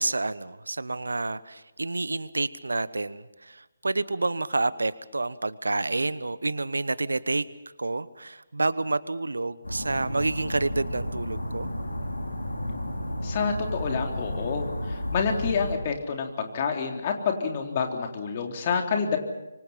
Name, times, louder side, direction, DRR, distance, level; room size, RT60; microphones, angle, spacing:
voice 1, 0.0-7.4 7.8-11.7, right 2 dB, 75° right, 17 dB, 1.0 m, -29 dB
sound 1, 9.6-15.8, left 1 dB, 85° left, 5.2 m, -32 dB
voice 2, 13.2-19.2, left 5 dB, 35° left, 3 dB, 3.6 m, -28 dB
26.0 x 24.5 x 5.8 m, 1.0 s
figure-of-eight pair, 145°, 0 cm